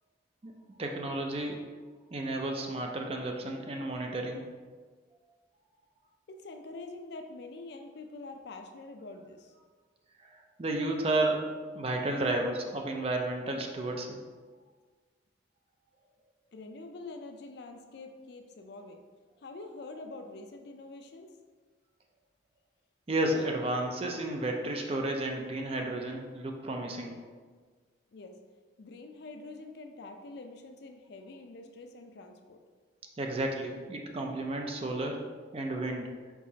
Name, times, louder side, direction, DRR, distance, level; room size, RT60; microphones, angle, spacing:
voice 1, 0.8-1.6 2.1-4.4 10.3-11.4 11.7-14.2 23.1-27.2 33.2-35.2 35.5-36.1, right 2 dB, 30° right, 2 dB, 0.4 m, -32 dB
voice 2, 6.3-9.5 16.5-19.0 19.4-21.3 28.1-28.4 28.8-32.6, left 2 dB, 55° left, 5 dB, 0.4 m, -45 dB
4.6 x 4.0 x 2.7 m, 1.5 s
head